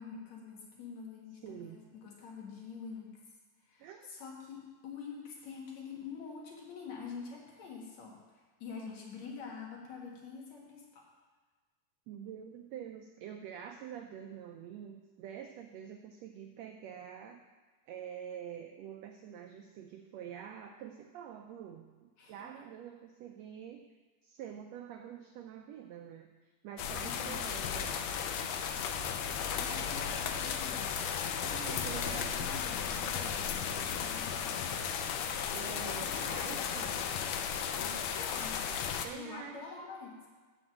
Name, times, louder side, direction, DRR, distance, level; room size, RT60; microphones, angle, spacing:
voice 1, 0.0-3.2 3.7-11.1 22.2-22.5 27.0-27.4 29.6-31.0 31.8-34.8 37.8-38.6 39.1-40.3, left 5 dB, 60° left, -2 dB, 2.7 m, -46 dB
voice 2, 1.4-1.8 3.8-4.1 12.1-17.4 17.9-23.9 24.2-28.2 31.4-32.5 35.5-37.0 39.0-39.9, right 9 dB, 85° right, 5 dB, 1.5 m, -46 dB
sound 1, 26.8-39.1, left 7 dB, 85° left, 2.2 m, -35 dB
7.8 x 6.2 x 7.5 m, 1.4 s
omnidirectional pair, 3.6 m